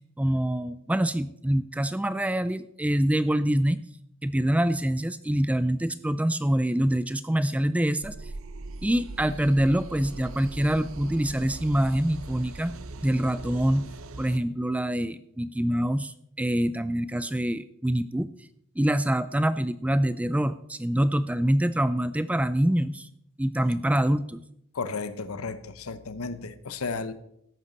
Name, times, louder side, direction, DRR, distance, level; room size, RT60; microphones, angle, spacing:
voice 1, 0.2-3.8 4.2-8.1 8.8-12.8 13.0-13.9 14.2-18.3 18.8-23.1 23.4-24.4, right 1 dB, 5° right, 0.3 m, -25 dB
sound 1, 8.0-14.4, right 2 dB, 75° right, 0.8 m, -40 dB
voice 2, 24.7-27.1, left 4 dB, 90° left, 0.9 m, -33 dB
14.0 x 11.0 x 4.1 m
head